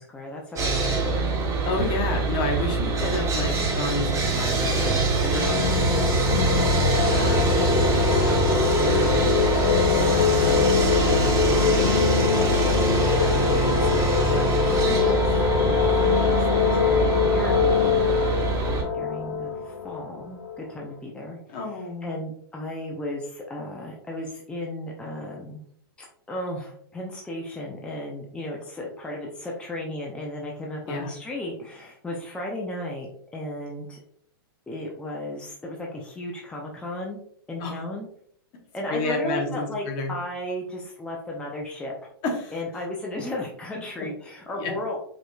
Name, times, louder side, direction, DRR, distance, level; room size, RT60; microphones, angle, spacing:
voice 1, 0.0-1.3 2.8-3.0 13.0-13.7 14.9-21.4 21.7-25.6 26.0-34.0 34.7-37.2 37.5-38.1 38.7-41.9 42.5-45.0, left 1 dB, 10° left, -2 dB, 0.6 m, -35 dB
Sawing, 0.6-18.8, right 3 dB, 25° right, 1.1 m, -24 dB
voice 2, 1.6-12.5 13.2-14.5 14.7-15.0 21.5-22.2 30.9-31.1 37.6-37.8 38.9-40.1 42.2-42.5 44.6-44.7, left 2 dB, 40° left, 2 dB, 1.1 m, -32 dB
sound 1, 5.1-20.7, left 5 dB, 90° left, 0.6 m, -23 dB
5.0 x 2.9 x 2.3 m, 0.64 s
hypercardioid pair, 125°, 13 cm